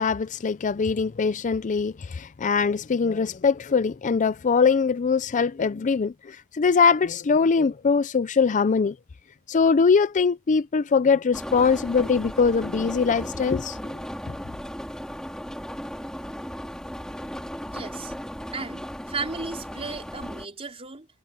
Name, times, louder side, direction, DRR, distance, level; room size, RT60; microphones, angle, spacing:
voice 1, 0.0-8.9 9.5-14.0, left 5 dB, 35° left, 0.4 m, -22 dB
sound 1, 11.3-20.5, equal, 5° left, 3.8 m, -36 dB
voice 2, 17.7-18.1 18.5-21.1, right 4 dB, 30° right, 4.4 m, -35 dB
head